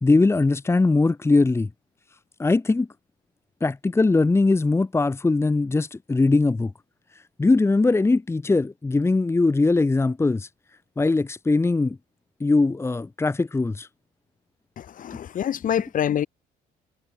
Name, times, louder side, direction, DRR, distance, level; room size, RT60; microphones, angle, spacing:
voice 1, 0.0-1.7 2.4-2.9 3.6-6.7 7.4-10.5 11.0-12.0 12.4-13.9, left 3 dB, 15° left, 1.4 m, -21 dB
voice 2, 14.8-16.3, left 10 dB, 50° left, 2.8 m, -26 dB
cardioid pair, 110°, 17 cm